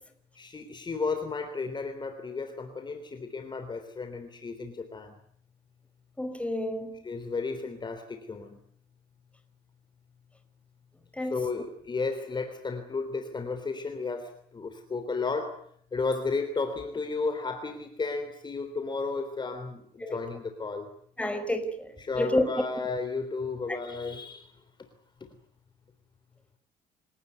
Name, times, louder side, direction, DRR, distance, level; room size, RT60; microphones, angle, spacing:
voice 1, 0.3-5.2 7.0-8.6 11.2-15.6 15.9-20.9 22.0-24.6, left 4 dB, 25° left, 3.4 m, -33 dB
voice 2, 6.2-7.0 11.2-11.4 20.0-20.2 21.2-22.5, left 1 dB, 5° left, 5.0 m, -30 dB
28.0 x 18.0 x 9.5 m
cardioid pair, 110°, 17 cm